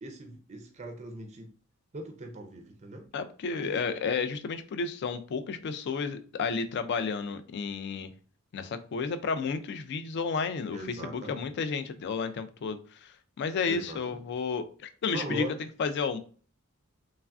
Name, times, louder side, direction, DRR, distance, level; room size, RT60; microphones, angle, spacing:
voice 1, 0.0-1.5 1.9-3.1 3.5-3.8 10.7-11.4 13.7-14.2 15.1-15.6, right 1 dB, 30° right, 4 dB, 0.4 m, -40 dB
voice 2, 3.1-8.1 8.5-13.1 13.4-15.4 15.8-16.2, left 5 dB, 55° left, 11 dB, 0.3 m, -32 dB
3.2 x 2.4 x 2.3 m, 0.41 s
head